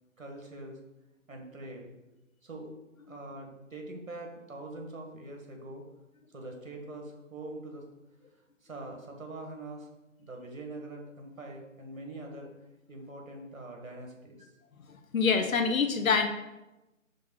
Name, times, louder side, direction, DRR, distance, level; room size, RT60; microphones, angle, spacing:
voice 1, 0.2-0.8 1.3-1.9 2.4-2.7 3.1-5.8 6.3-7.8 8.6-9.9 10.2-12.5 12.9-14.5, right 2 dB, 80° right, 1 dB, 1.8 m, -43 dB
voice 2, 15.1-16.3, left 5 dB, 80° left, 6 dB, 0.9 m, -25 dB
5.2 x 3.8 x 5.5 m, 1.0 s
hypercardioid pair, 175°, 40 cm